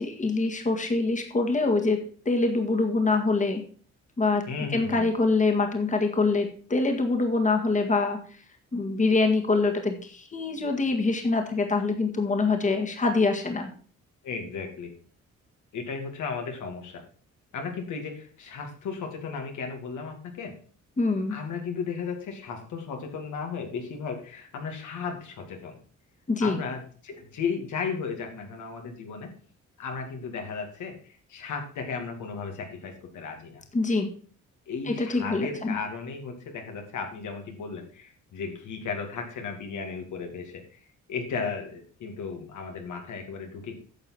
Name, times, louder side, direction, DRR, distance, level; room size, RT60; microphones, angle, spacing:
voice 1, 0.0-2.0 2.3-3.6 4.2-4.4 4.7-8.4 8.7-13.7 21.0-21.4 26.3-26.6 33.7-34.1 34.9-35.8, left 3 dB, 25° left, 4 dB, 1.9 m, -25 dB
voice 2, 4.5-5.1 14.2-14.9 15.7-17.0 17.5-20.6 21.3-25.8 26.4-29.3 29.8-33.6 34.7-43.7, left 5 dB, 75° left, 3 dB, 2.5 m, -35 dB
10.0 x 6.3 x 6.0 m, 0.43 s
cardioid pair, 90°, 30 cm